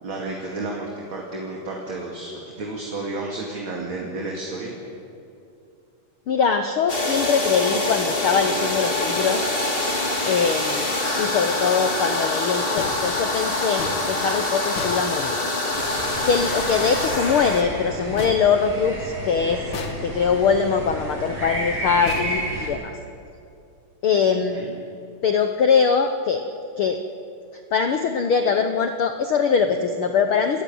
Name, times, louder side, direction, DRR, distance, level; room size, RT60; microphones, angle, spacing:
voice 1, 0.0-4.7 24.5-24.8, right 2 dB, 40° right, -1 dB, 2.8 m, -32 dB
voice 2, 6.3-9.5 10.3-15.4 16.2-19.6 20.0-22.9 24.0-24.6 25.2-26.4 26.8-27.0 27.5-30.6, left 6 dB, 75° left, 7 dB, 1.2 m, -22 dB
sound 1, 6.9-17.6, left 2 dB, 20° left, 2.0 m, -25 dB
sound 2, 12.8-15.8 18.2-19.2 19.7-20.5 22.0-23.1, left 5 dB, 55° left, 1.5 m, -36 dB
sound 3, 15.7-22.7, right 1 dB, 70° right, 9.3 m, -32 dB
30.0 x 14.0 x 9.4 m, 2.6 s
omnidirectional pair, 3.8 m